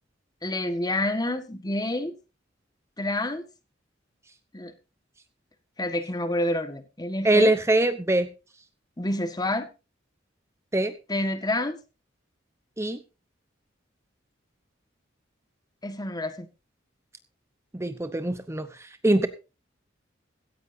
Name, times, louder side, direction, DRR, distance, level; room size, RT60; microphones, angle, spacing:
voice 1, 0.4-2.2 3.0-3.4 4.5-4.7 5.8-7.5 9.0-9.7 11.1-11.8 15.8-16.5, left 1 dB, 20° left, 10 dB, 1.6 m, -28 dB
voice 2, 7.2-8.3 10.7-10.9 12.8-13.0 17.7-19.3, right 1 dB, 15° right, 10 dB, 0.8 m, -23 dB
16.5 x 15.0 x 2.7 m, 0.31 s
head